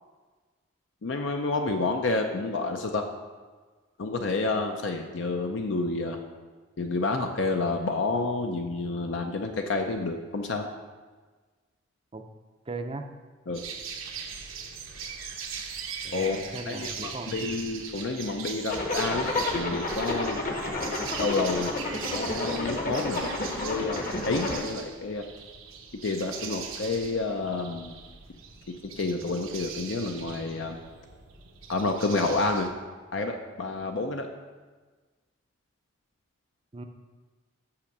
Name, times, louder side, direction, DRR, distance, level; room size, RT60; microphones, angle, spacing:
voice 1, 1.0-3.0 4.0-6.2 6.8-10.7 13.5-13.6 16.1-16.4 16.7-20.4 21.2-21.7 22.1-23.2 23.6-25.3 26.0-27.9 28.7-30.8 31.7-32.7 33.1-34.3, left 3 dB, 65° left, 4 dB, 0.6 m, -29 dB
voice 2, 12.7-13.1 16.0-17.5 36.7-36.8, right 3 dB, 25° right, 5 dB, 0.5 m, -38 dB
sound 1, 13.5-32.7, right 6 dB, 80° right, 1.0 m, -40 dB
Zipper (clothing), 18.7-24.6, left 2 dB, 40° left, 1.0 m, -31 dB
6.9 x 5.8 x 6.5 m, 1.4 s
head